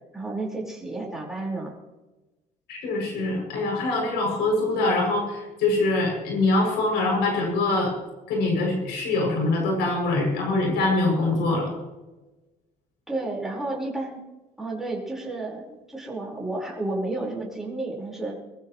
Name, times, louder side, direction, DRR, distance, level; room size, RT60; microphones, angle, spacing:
voice 1, 0.1-1.7 13.1-14.2 14.6-18.4, right 2 dB, ahead, -4 dB, 4.8 m, -31 dB
voice 2, 2.7-7.9 8.3-11.7, left 2 dB, 85° left, 0 dB, 7.2 m, -24 dB
23.5 x 15.0 x 3.2 m, 1.1 s
cardioid pair, 110°, 17 cm